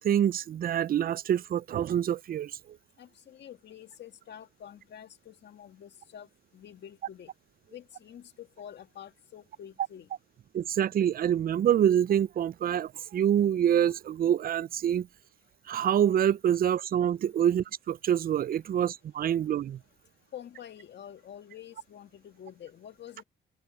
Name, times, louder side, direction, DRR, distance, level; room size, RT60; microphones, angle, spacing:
voice 1, 0.0-2.5 10.5-15.1 15.7-19.8, right 10 dB, 50° right, 0.5 m, -26 dB
voice 2, 3.0-6.3 6.5-7.3 7.7-10.1 20.3-23.2, left 9 dB, 60° left, 1.9 m, -47 dB
cardioid pair, 90°, 20 cm